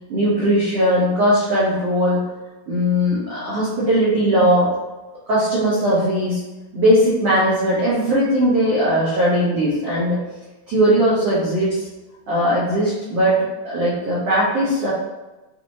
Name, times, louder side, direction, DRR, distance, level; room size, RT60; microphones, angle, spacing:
voice 1, 0.1-2.2 2.7-4.7 5.3-6.4 6.7-10.2 10.7-11.9 12.3-14.9, equal, 75° right, -10 dB, 1.3 m, -19 dB
5.8 x 2.7 x 3.0 m, 1.1 s
omnidirectional pair, 4.4 m